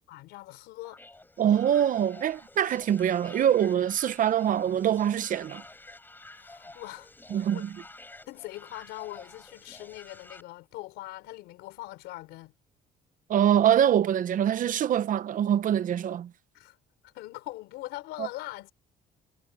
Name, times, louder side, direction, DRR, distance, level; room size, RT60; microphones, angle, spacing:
voice 1, 0.1-1.0 6.3-7.7 8.3-12.5 16.5-16.8 17.0-18.7, left 18 dB, 90° left, 4.1 m, -42 dB
sound 1, 0.8-10.4, left 2 dB, 10° left, 4.7 m, -50 dB
voice 2, 1.4-5.6 7.3-7.7 13.3-16.3 18.2-18.3, right 10 dB, 50° right, 1.0 m, -24 dB
cardioid pair, 110°, 17 cm